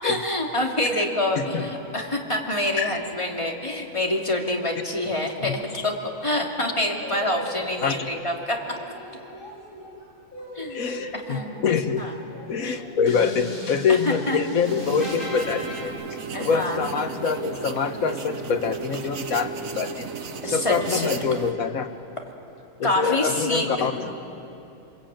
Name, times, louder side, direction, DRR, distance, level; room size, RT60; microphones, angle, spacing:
voice 1, 0.0-5.9 6.2-8.6 10.5-10.8 11.1-11.6 12.0-12.1 12.6-12.8 14.0-14.4 16.3-16.8 20.4-21.2 22.8-24.2, left 1 dB, 20° left, 0 dB, 2.7 m, -26 dB
voice 2, 1.4-1.7 2.8-3.0 5.4-5.8 7.8-8.1 10.6-12.0 12.5-15.9 16.4-20.1 20.5-21.9 22.8-24.1, left 6 dB, 90° left, 8 dB, 1.7 m, -25 dB
sound 1, 6.9-8.1 8.5-15.9, left 1 dB, 40° left, 7.4 m, -38 dB
sound 2, 14.6-21.5, right 5 dB, 75° right, 1.6 m, -34 dB
28.5 x 21.5 x 9.0 m, 2.8 s
omnidirectional pair, 1.4 m